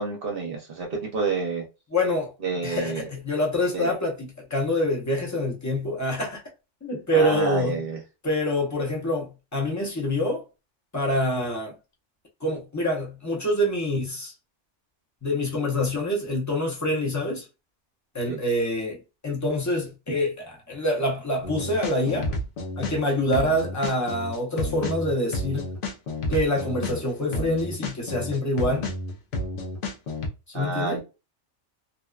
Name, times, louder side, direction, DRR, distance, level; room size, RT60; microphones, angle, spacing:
voice 1, 0.0-1.6 2.4-3.1 3.7-3.9 7.1-8.0 18.3-18.4 30.5-31.0, right 4 dB, 55° right, 0.8 m, -29 dB
voice 2, 1.9-2.3 2.6-6.4 6.8-7.8 8.2-10.4 10.9-11.7 12.4-14.3 15.2-17.4 18.1-22.3 22.8-25.7 26.3-28.9 30.5-31.0, left 1 dB, 20° left, 0.4 m, -26 dB
sound 1, 21.4-23.0 23.3-30.3, left 2 dB, 55° left, 0.7 m, -31 dB
2.7 x 2.1 x 2.3 m
omnidirectional pair, 1.3 m